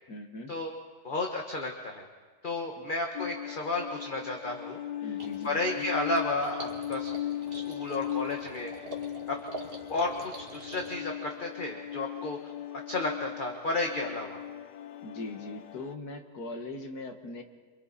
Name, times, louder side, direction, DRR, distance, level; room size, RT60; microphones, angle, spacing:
voice 1, 0.1-0.5 2.8-2.9 5.0-5.8 15.0-17.4, left 2 dB, 70° left, 4 dB, 2.3 m, -40 dB
voice 2, 1.0-2.1 2.4-4.8 5.4-7.1 7.5-8.7 9.3-9.4 9.9-14.4, left 2 dB, 30° left, 2 dB, 1.5 m, -32 dB
sound 1, 3.1-15.9, left 11 dB, 90° left, 1.4 m, -38 dB
sound 2, 5.2-11.0, right 1 dB, 35° right, 2.6 m, -46 dB
28.0 x 26.0 x 4.3 m, 1.5 s
omnidirectional pair, 1.7 m